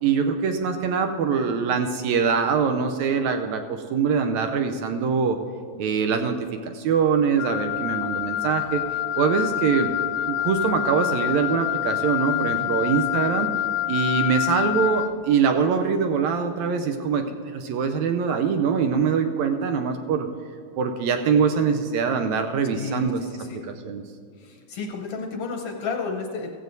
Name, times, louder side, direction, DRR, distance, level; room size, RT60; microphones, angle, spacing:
voice 1, 0.0-5.4 5.8-6.4 6.7-8.8 9.2-9.9 10.3-13.5 13.9-20.3 20.8-23.2 23.8-24.0, right 6 dB, 75° right, 6 dB, 1.8 m, -23 dB
Wind instrument woodwind instrument, 7.4-15.2, left 14 dB, 85° left, 2.0 m, -27 dB
voice 2, 12.3-12.7 22.7-23.6 24.4-26.5, left 4 dB, 65° left, 2 dB, 1.5 m, -32 dB
15.5 x 15.5 x 2.7 m, 2.2 s
omnidirectional pair, 3.6 m